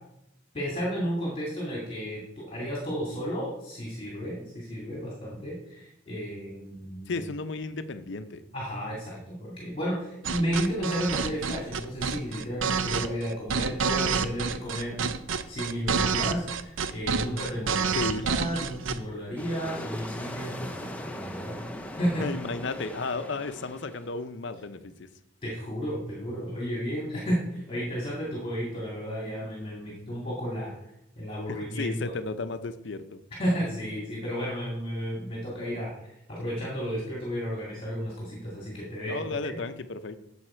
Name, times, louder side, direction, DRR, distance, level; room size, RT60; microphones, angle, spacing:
voice 1, 0.5-7.2 8.5-15.1 15.5-21.6 22.0-22.3 25.4-30.7 31.2-31.9 33.4-35.9 36.3-39.2 39.4-39.6, equal, 25° left, -4 dB, 2.1 m, -32 dB
voice 2, 7.1-8.4 17.9-18.3 22.2-25.1 31.5-33.2 39.1-40.2, left 3 dB, 60° left, 11 dB, 0.6 m, -34 dB
sound 1, 10.2-19.0, right 6 dB, 75° right, 0.5 m, -28 dB
sound 2, 19.4-24.2, equal, 5° left, 0.6 m, -40 dB
9.7 x 7.1 x 4.4 m, 0.82 s
head